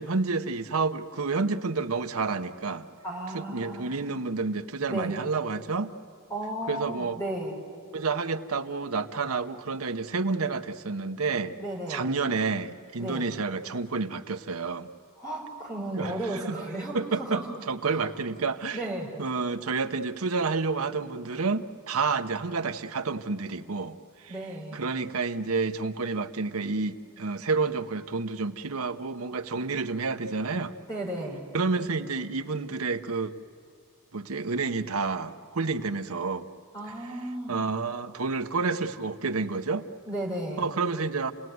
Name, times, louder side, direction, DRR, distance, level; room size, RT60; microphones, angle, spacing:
voice 1, 0.0-2.9 3.3-5.9 6.7-7.2 7.9-11.5 11.9-14.9 16.0-16.6 16.9-18.8 19.2-24.0 24.2-24.4 24.7-30.7 31.5-33.3 34.1-36.5 37.5-39.9 40.6-41.3, right 4 dB, 85° right, 9 dB, 1.0 m, -29 dB
voice 2, 3.0-4.0 4.9-5.2 6.3-7.6 11.6-12.1 13.0-13.3 15.2-17.5 17.8-18.0 18.7-19.1 24.3-24.9 30.9-31.5 36.7-37.6 40.1-40.7, right 1 dB, 15° left, -1 dB, 5.1 m, -34 dB
29.0 x 18.5 x 9.5 m, 2.4 s
head